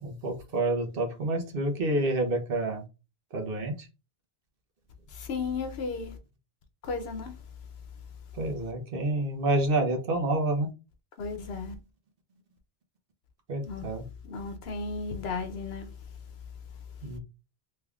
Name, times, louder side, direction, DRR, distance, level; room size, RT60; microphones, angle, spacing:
voice 1, 0.0-2.8 3.3-3.7 8.4-10.7 13.5-14.0 17.0-17.2, right 2 dB, 65° right, 1.0 m, -28 dB
voice 2, 5.1-6.2 6.8-7.5 11.2-11.7 13.6-13.9 14.2-15.9, left 4 dB, 80° left, 0.9 m, -34 dB
3.3 x 3.2 x 2.3 m
omnidirectional pair, 1.0 m